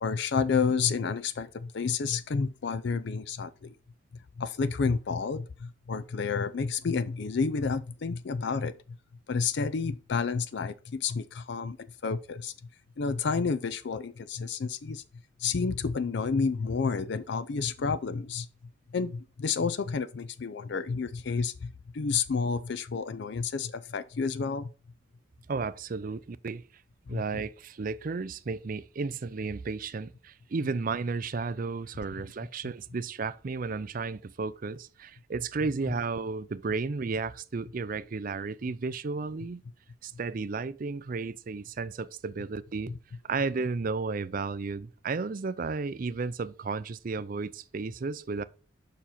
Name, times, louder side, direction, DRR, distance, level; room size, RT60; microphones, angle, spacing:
voice 1, 0.0-3.7 4.4-8.7 9.3-12.5 13.0-15.0 15.4-18.5 18.9-24.7 27.1-27.2, left 5 dB, 55° left, 0.4 m, -30 dB
voice 2, 25.5-26.6 27.1-39.6 40.0-42.9 43.3-48.4, right 4 dB, 45° right, 0.4 m, -33 dB
7.0 x 5.8 x 4.2 m
head